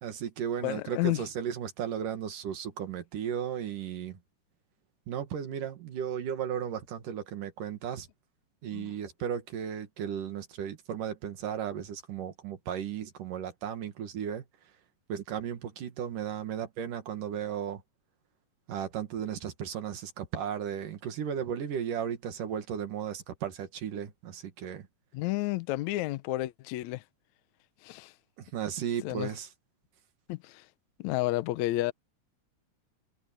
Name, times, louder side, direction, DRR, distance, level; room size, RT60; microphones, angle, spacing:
voice 1, 0.0-4.2 5.1-8.1 8.6-14.4 15.1-17.8 18.7-24.9 28.4-29.5, right 8 dB, 75° right, 3.6 m, -35 dB
voice 2, 0.6-1.2 8.7-8.9 25.1-27.0 27.8-28.1 29.0-29.3 30.3-30.6 31.0-31.9, left 18 dB, 75° left, 1.8 m, -31 dB
omnidirectional pair, 3.9 m